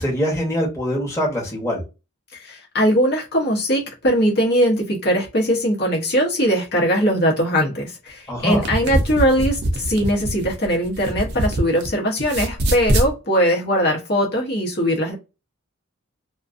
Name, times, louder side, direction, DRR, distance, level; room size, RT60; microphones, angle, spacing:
voice 1, 0.0-1.8 8.3-8.7, equal, 15° left, 0.9 m, -23 dB
voice 2, 2.3-15.1, equal, 50° left, 0.8 m, -20 dB
sound 1, 8.4-11.9 12.2-13.1, right 1 dB, 50° right, 0.6 m, -23 dB
2.4 x 2.3 x 2.4 m
head